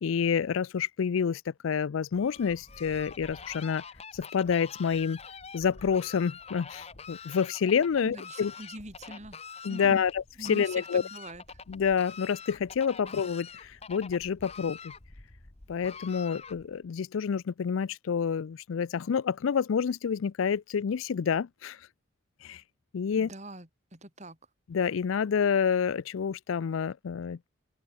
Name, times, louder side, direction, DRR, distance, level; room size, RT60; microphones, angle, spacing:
voice 1, 0.0-3.8 4.1-5.2 5.5-8.5 9.6-11.0 11.7-14.9 15.7-21.8 22.4-22.6 22.9-23.3 24.7-27.5, left 6 dB, 80° left, 0.4 m, -28 dB
Fowl, 2.1-16.9, left 5 dB, 30° left, 1.2 m, -46 dB
voice 2, 8.0-9.4 9.6-10.0 10.4-11.4 13.0-13.2 23.2-24.4, right 1 dB, 35° right, 6.2 m, -44 dB
open air
head